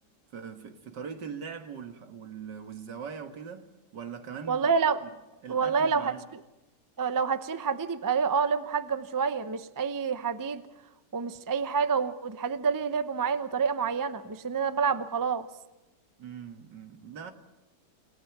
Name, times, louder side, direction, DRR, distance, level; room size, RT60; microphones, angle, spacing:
voice 1, 0.3-4.6 5.0-5.1 5.4-6.2 16.2-17.3, right 6 dB, 85° right, 2.3 m, -41 dB
voice 2, 4.5-5.0 5.5-6.1 7.0-10.6 11.1-15.5, right 5 dB, 25° right, 0.4 m, -28 dB
29.0 x 18.0 x 6.0 m
omnidirectional pair, 1.8 m